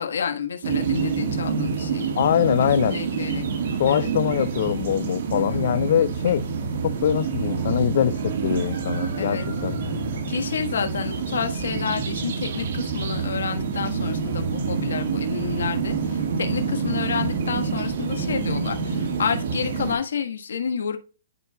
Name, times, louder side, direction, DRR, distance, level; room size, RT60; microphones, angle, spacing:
voice 1, 0.0-2.1 2.8-3.5 3.9-4.1 5.3-5.6 9.2-9.5 10.3-21.0, left 7 dB, 80° left, 5 dB, 1.4 m, -29 dB
sound 1, 0.6-19.9, right 5 dB, 55° right, 1.7 m, -27 dB
voice 2, 2.2-3.0 3.8-6.4 6.8-9.8, left 10 dB, 55° left, 12 dB, 0.4 m, -23 dB
10.5 x 4.5 x 2.3 m, 0.33 s
hypercardioid pair, 150°, 0 cm